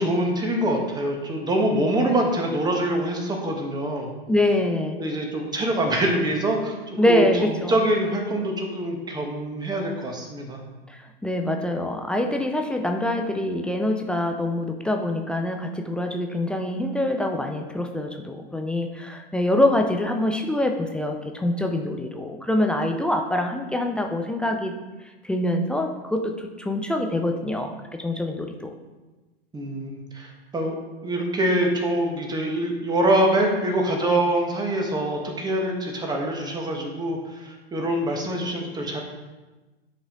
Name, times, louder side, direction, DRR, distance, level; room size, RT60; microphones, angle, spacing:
voice 1, 0.0-4.1 5.0-10.6 29.5-30.7 31.0-39.0, right 1 dB, 15° right, 1 dB, 1.6 m, -25 dB
voice 2, 4.3-5.0 7.0-7.7 10.9-24.8 25.2-28.7, left 1 dB, 5° left, 3 dB, 0.3 m, -25 dB
10.5 x 5.0 x 3.9 m, 1.2 s
figure-of-eight pair, 100°, 31 cm